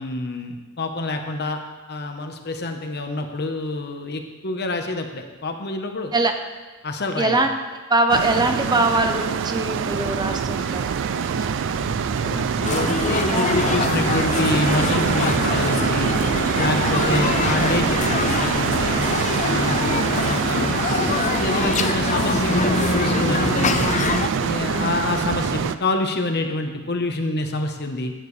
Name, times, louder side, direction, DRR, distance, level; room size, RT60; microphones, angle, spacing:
voice 1, 0.0-1.6 1.9-6.1 6.8-7.4 12.2-16.1 16.6-19.0 19.4-23.9 24.4-28.1, left 2 dB, 50° left, 5 dB, 1.1 m, -27 dB
voice 2, 7.2-7.5 7.9-11.1 24.7-24.9, right 2 dB, 20° right, 5 dB, 0.8 m, -22 dB
sound 1, 8.1-25.7, right 7 dB, 60° right, 0.4 m, -24 dB
sound 2, 10.5-25.5, right 1 dB, 85° right, 2.7 m, -38 dB
sound 3, 12.6-24.3, left 4 dB, 35° left, 0.5 m, -24 dB
15.0 x 9.3 x 3.3 m, 1.4 s
head